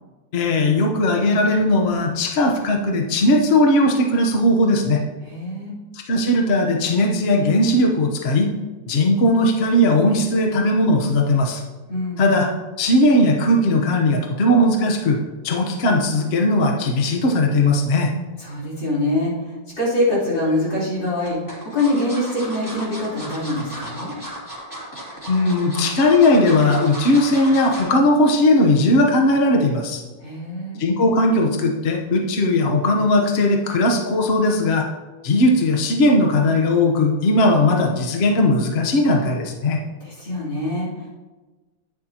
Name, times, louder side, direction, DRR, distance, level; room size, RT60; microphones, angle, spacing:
voice 1, 0.3-5.0 5.9-8.5 8.9-11.6 12.2-12.5 12.8-15.2 15.4-18.1 25.3-30.0 30.8-34.9 35.2-39.8, left 1 dB, 40° left, 1 dB, 1.0 m, -18 dB
voice 2, 5.2-5.8 11.9-12.3 18.4-21.4 21.7-24.2 30.2-30.8 40.0-41.1, left 1 dB, 85° left, -7 dB, 4.2 m, -24 dB
sound 1, 20.0-20.5 21.2-28.0 28.4-28.6 28.9-29.0, equal, 10° left, 2.6 m, -35 dB
11.5 x 9.4 x 2.9 m, 1.3 s
omnidirectional pair, 2.0 m